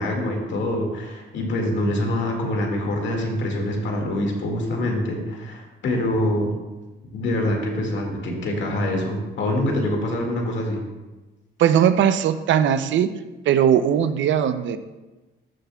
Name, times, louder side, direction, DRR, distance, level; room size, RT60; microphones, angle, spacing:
voice 1, 0.0-6.5 7.1-10.8, left 1 dB, 70° left, 1 dB, 2.1 m, -25 dB
voice 2, 11.6-13.1 13.5-14.8, right 9 dB, 70° right, 11 dB, 0.6 m, -19 dB
13.0 x 7.1 x 2.3 m, 1.1 s
cardioid pair, 90°, 20 cm